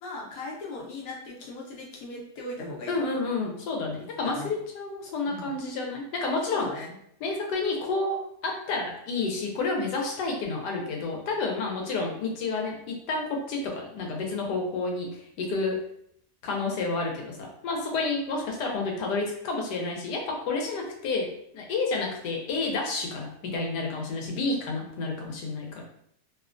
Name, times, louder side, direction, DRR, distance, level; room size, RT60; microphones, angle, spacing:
voice 1, 0.0-3.1 4.2-4.5 5.3-5.6 6.5-6.9, left 2 dB, 65° left, -3 dB, 1.1 m, -38 dB
voice 2, 2.9-6.7 7.2-8.2 8.4-15.8 16.4-25.8, left 3 dB, 90° left, 1 dB, 1.2 m, -30 dB
2.9 x 2.1 x 2.4 m, 0.72 s
omnidirectional pair, 1.7 m